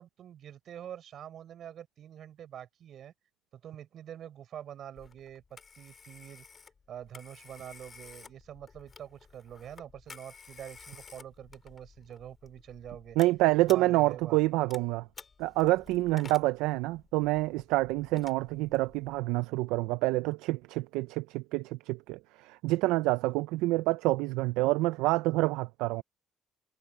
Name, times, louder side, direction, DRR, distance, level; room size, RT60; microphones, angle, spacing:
voice 1, 0.0-3.1 3.5-5.4 5.7-6.5 6.9-13.2 13.7-14.4, right 10 dB, 60° right, 7.3 m, -45 dB
Telephone, 5.0-19.2, left 5 dB, 40° left, 4.5 m, -53 dB
voice 2, 13.2-15.1 15.4-26.0, right 19 dB, 80° right, 0.6 m, -27 dB
supercardioid pair, 65°, 0 cm